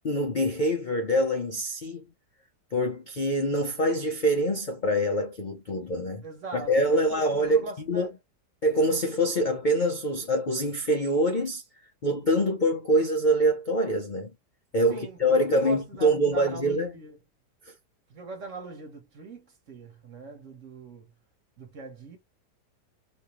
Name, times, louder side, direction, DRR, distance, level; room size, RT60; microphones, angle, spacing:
voice 1, 0.0-2.0 2.7-6.2 6.5-8.1 8.6-11.6 12.0-14.3 14.7-16.9 17.6-17.7, equal, 60° left, 0.5 m, -25 dB
voice 2, 6.2-8.1 14.9-17.2 18.1-21.1 21.6-22.2, right 2 dB, 50° right, 1.4 m, -41 dB
3.2 x 2.9 x 3.1 m
omnidirectional pair, 1.8 m